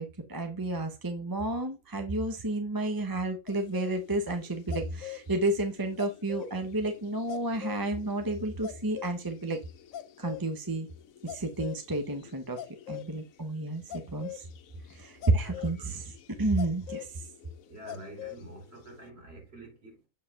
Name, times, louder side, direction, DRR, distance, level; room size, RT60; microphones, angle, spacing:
voice 1, 0.0-9.6 10.2-10.9 11.2-12.6 12.9-14.4 14.9-17.3, right 2 dB, 20° right, 0.9 m, -31 dB
sound 1, 3.5-13.1 13.9-18.4 18.7-18.9, left 12 dB, 90° left, 1.1 m, -43 dB
voice 2, 17.7-20.1, right 1 dB, 50° right, 3.5 m, -47 dB
7.4 x 4.7 x 3.5 m
omnidirectional pair, 1.4 m